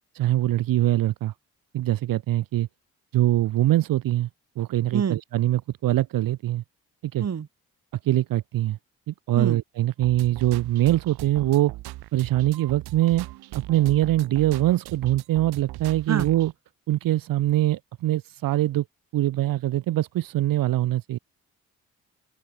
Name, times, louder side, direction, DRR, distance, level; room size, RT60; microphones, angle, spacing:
voice 1, 0.1-1.3 1.7-2.7 3.1-4.3 4.6-6.6 7.0-7.3 8.0-8.8 9.1-11.7 12.1-13.3 13.5-16.5 16.9-18.8 19.1-21.2, right 14 dB, 60° right, 0.8 m, -23 dB
voice 2, 4.9-5.2 7.2-7.5 9.3-9.6 16.1-16.3, right 7 dB, 45° right, 1.6 m, -26 dB
sound 1, 10.0-16.5, right 18 dB, 80° right, 4.0 m, -39 dB
open air
hypercardioid pair, 45°, 38 cm